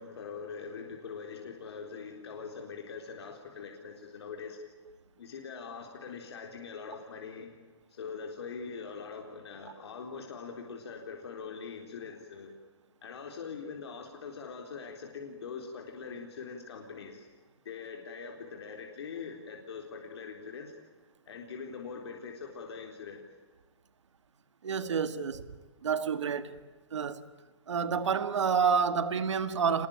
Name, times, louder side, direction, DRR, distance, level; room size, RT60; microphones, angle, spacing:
voice 1, 0.0-4.6 5.2-7.5 7.9-12.5 13.0-17.3 17.6-20.7 21.3-23.2, left 5 dB, 65° left, 3.9 m, -42 dB
voice 2, 24.6-25.5 25.8-26.6 26.9-27.3 27.7-29.9, right 6 dB, 85° right, 2.0 m, -29 dB
27.0 x 21.0 x 8.8 m
hypercardioid pair, 170°, 15 cm